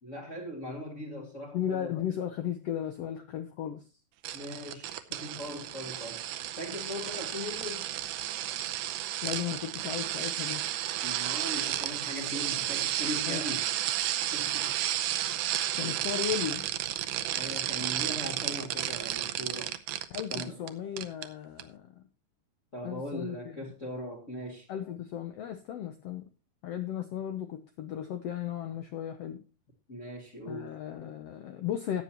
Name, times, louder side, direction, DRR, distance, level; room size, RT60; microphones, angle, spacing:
voice 1, 0.0-1.9 4.3-6.3 6.6-7.9 11.0-14.9 17.3-19.8 20.3-20.6 22.7-24.7 29.9-30.7, equal, 25° left, 2.1 m, -40 dB
voice 2, 1.5-3.8 9.2-10.7 13.2-13.4 15.7-16.7 20.1-22.0 22.8-23.4 24.7-26.2 26.6-29.4 30.5-32.0, left 10 dB, 70° left, 1.5 m, -35 dB
sound 1, 4.2-20.7 21.0-21.3 21.6-21.7, right 13 dB, 80° right, 2.2 m, -32 dB
15.0 x 9.0 x 2.9 m
omnidirectional pair, 3.8 m